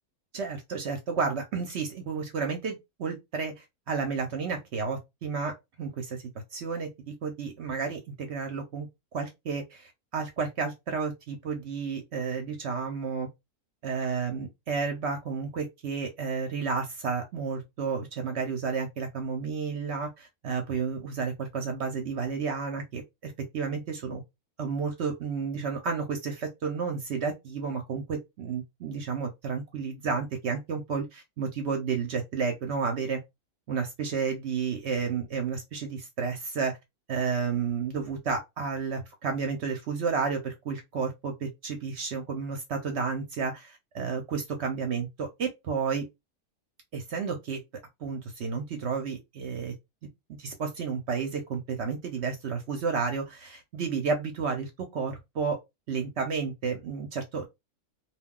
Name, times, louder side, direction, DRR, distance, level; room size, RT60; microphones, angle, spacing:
voice 1, 0.3-6.2 6.5-8.9 9.1-13.3 13.8-24.2 24.6-33.2 33.7-36.8 37.1-46.1 46.9-47.6 48.0-49.7 50.0-50.1 50.4-55.6 55.9-57.5, right 5 dB, 60° right, 0.7 m, -31 dB
2.3 x 2.2 x 3.6 m
omnidirectional pair, 1.6 m